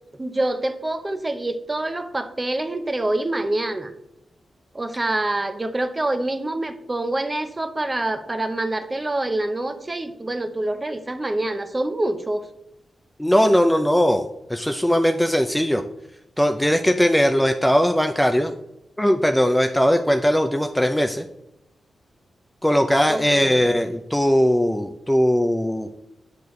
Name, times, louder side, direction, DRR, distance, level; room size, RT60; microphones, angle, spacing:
voice 1, 0.2-3.9 4.7-12.5 23.1-23.7, right 2 dB, 20° right, 9 dB, 0.7 m, -26 dB
voice 2, 13.2-15.8 16.4-18.5 19.0-21.3 22.6-25.9, equal, 5° left, 6 dB, 0.4 m, -19 dB
8.2 x 6.8 x 3.1 m, 0.85 s
cardioid pair, 95°, 0 cm